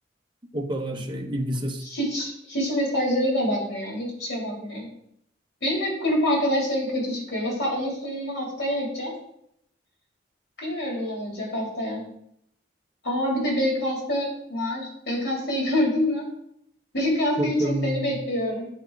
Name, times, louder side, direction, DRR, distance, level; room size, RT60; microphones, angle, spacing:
voice 1, 0.5-1.8 17.4-18.1, right 1 dB, 25° right, 3 dB, 0.8 m, -28 dB
voice 2, 1.8-4.9 5.6-9.2 10.6-12.0 13.0-16.3 16.9-18.7, left 1 dB, 65° left, -3 dB, 3.1 m, -26 dB
8.0 x 4.4 x 4.6 m, 0.75 s
head